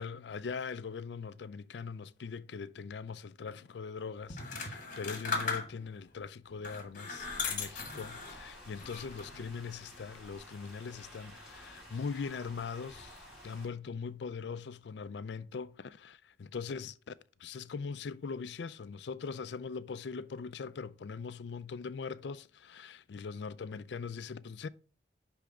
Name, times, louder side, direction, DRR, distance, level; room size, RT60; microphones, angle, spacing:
voice 1, 0.0-24.7, left 5 dB, 70° left, 0.4 m, -41 dB
sound 1, 4.3-6.0 6.6-8.4 8.8-9.4, left 4 dB, 45° left, 1.7 m, -37 dB
sound 2, 7.2-13.7, equal, 5° right, 3.7 m, -52 dB
10.0 x 3.4 x 4.8 m
head